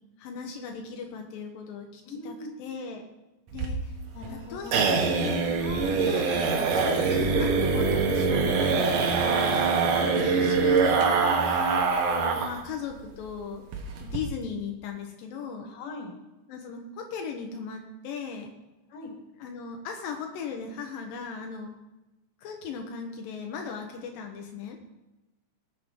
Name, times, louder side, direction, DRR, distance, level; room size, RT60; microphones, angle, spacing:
voice 1, 0.2-3.0 3.5-3.9 4.3-5.5 6.1-13.6 14.0-15.7 16.5-18.5 19.4-21.7 22.4-24.8, left 6 dB, 85° left, 3 dB, 2.8 m, -37 dB
voice 2, 2.1-2.5 4.1-4.8 5.6-6.0 9.9-10.2 15.6-16.1 18.9-19.1, left 3 dB, 65° left, 1 dB, 3.5 m, -40 dB
sound 1, 3.5-12.6 12.9-13.0 13.3-13.4 13.7-14.2, right 4 dB, 75° right, 2.8 m, -24 dB
19.0 x 7.6 x 3.7 m, 1.0 s
omnidirectional pair, 3.9 m